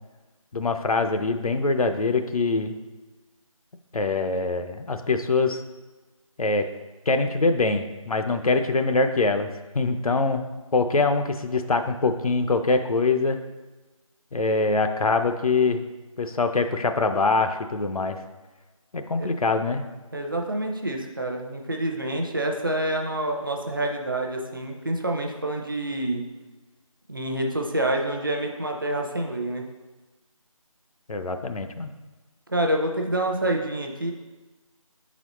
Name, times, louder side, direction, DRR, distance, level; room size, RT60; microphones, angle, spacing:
voice 1, 0.5-2.7 3.9-5.6 6.4-6.6 7.1-10.4 10.7-13.4 14.3-15.8 16.2-18.2 18.9-19.8 31.1-31.9, left 3 dB, 85° left, 7 dB, 0.6 m, -24 dB
voice 2, 20.1-26.3 27.1-29.6 32.5-34.1, right 1 dB, 40° right, 1 dB, 0.6 m, -27 dB
7.6 x 4.0 x 3.0 m, 1.2 s
figure-of-eight pair, 175°, 18 cm